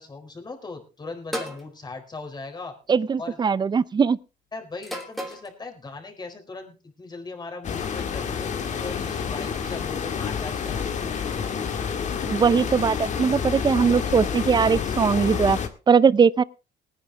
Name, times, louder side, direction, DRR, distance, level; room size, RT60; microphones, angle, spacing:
voice 1, 0.0-2.7 3.2-3.4 4.5-11.2, left 3 dB, 25° left, 4.2 m, -39 dB
sound 1, 1.3-1.7 2.8-3.2 4.8-5.5, equal, ahead, 2.9 m, -33 dB
voice 2, 2.9-4.2 12.3-15.6 15.9-16.4, right 6 dB, 25° right, 0.6 m, -20 dB
sound 2, 7.6-15.7, left 6 dB, 45° left, 1.8 m, -28 dB
20.0 x 9.9 x 3.4 m
cardioid pair, 110°, 17 cm